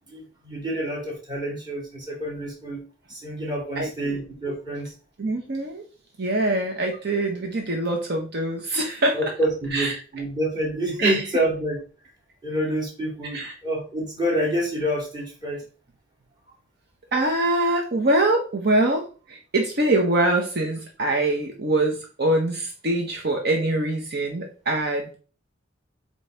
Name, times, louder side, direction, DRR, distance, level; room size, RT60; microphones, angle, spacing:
voice 1, 0.1-2.8 3.1-4.9 9.1-11.8 12.4-15.6, right 1 dB, 20° right, -3 dB, 2.6 m, -27 dB
voice 2, 3.8-4.2 5.2-5.8 6.2-9.2 9.7-10.0 11.0-11.2 13.3-13.5 17.1-25.1, right 2 dB, 55° right, 2 dB, 0.9 m, -24 dB
7.8 x 3.1 x 4.4 m, 0.38 s
head